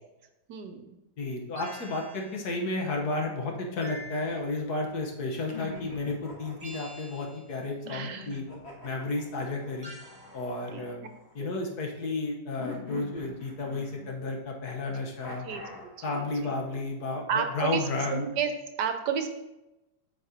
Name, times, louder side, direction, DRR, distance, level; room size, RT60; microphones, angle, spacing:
voice 1, 0.5-0.9 7.9-8.3 10.7-10.9 11.4-11.5 15.4-15.6 16.1-16.5 17.3-17.8 18.1-18.5 18.8-19.3, right 7 dB, 70° right, 6 dB, 1.2 m, -31 dB
voice 2, 1.2-8.4 8.8-9.9 10.3-11.0 11.3-15.5 16.0-18.2, left 2 dB, 60° left, 0 dB, 1.7 m, -32 dB
sound 1, 1.6-2.5 3.8-4.7 6.6-7.5 9.8-10.4, equal, 35° right, 0.6 m, -46 dB
sound 2, 3.9-4.9 5.5-7.2 7.8-11.6 12.6-14.4 15.2-16.0, left 3 dB, 35° left, 1.9 m, -45 dB
8.6 x 6.6 x 2.9 m, 0.95 s
omnidirectional pair, 2.0 m